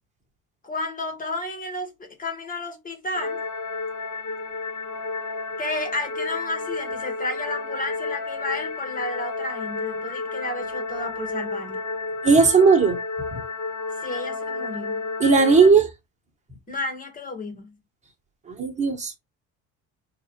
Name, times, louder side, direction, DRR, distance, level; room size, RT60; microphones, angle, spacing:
voice 1, 0.6-3.4 5.6-11.8 14.0-15.1 16.7-17.8, left 2 dB, 25° left, 1.7 m, -32 dB
sound 1, 3.1-15.7, left 3 dB, 55° left, 1.2 m, -31 dB
voice 2, 12.2-13.0 15.2-15.9 18.6-19.2, right 4 dB, 20° right, 1.7 m, -16 dB
4.5 x 2.8 x 3.1 m
cardioid pair, 115°, 32 cm